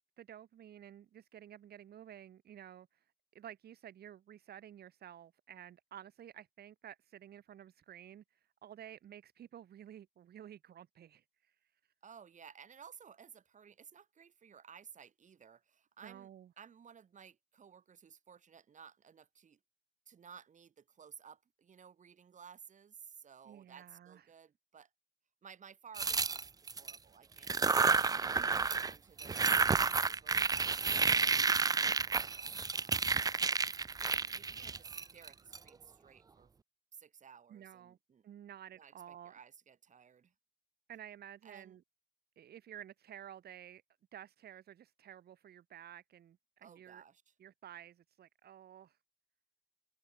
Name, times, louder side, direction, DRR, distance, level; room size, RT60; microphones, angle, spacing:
voice 1, 0.2-3.0 3.3-11.6 16.0-16.5 23.5-24.3 28.4-28.5 37.5-38.0 38.2-39.3 40.9-41.8 42.4-43.8 44.1-47.0 47.4-49.0, right 10 dB, 70° right, 1.8 m, -52 dB
voice 2, 12.0-16.3 16.6-19.6 20.1-24.9 25.4-28.2 28.4-31.9 32.3-33.3 34.0-36.5 36.9-38.2 38.7-40.3 41.4-41.8 46.6-47.2, right 7 dB, 45° right, 7.5 m, -57 dB
sound 1, 25.9-26.9 27.4-28.9 29.2-35.6, right 5 dB, 20° right, 0.5 m, -31 dB
wide cardioid pair, 165°, 17 cm